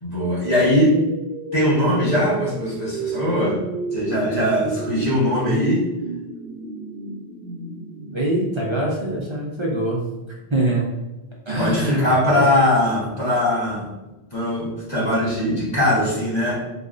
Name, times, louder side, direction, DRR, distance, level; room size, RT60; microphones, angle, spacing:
voice 1, 0.0-1.0 1.5-3.6 3.9-5.8 11.6-13.9 14.3-16.6, left 1 dB, 40° left, -7 dB, 1.3 m, -20 dB
sound 1, 0.6-9.5, right 3 dB, 75° right, 0.9 m, -33 dB
voice 2, 5.4-5.7 8.1-10.0 10.5-10.9 11.5-12.4, right 1 dB, 35° right, -3 dB, 0.5 m, -24 dB
4.0 x 2.4 x 2.5 m, 1.0 s
omnidirectional pair, 1.1 m